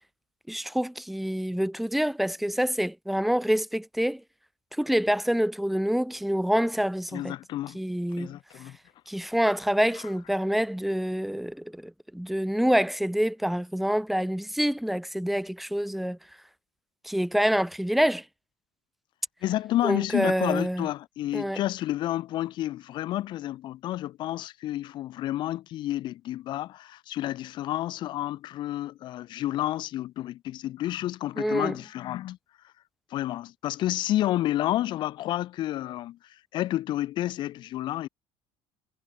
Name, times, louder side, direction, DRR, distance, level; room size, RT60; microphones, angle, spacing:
voice 1, 0.5-4.2 4.8-7.4 7.7-8.3 9.1-16.2 17.0-18.2 19.8-20.9 21.3-21.6 31.4-31.7, equal, ahead, 0.6 m, -26 dB
voice 2, 7.1-7.8 8.2-8.8 19.4-32.4 33.1-36.2 36.5-38.1, left 14 dB, 45° left, 0.6 m, -30 dB
cardioid pair, 155°, 11 cm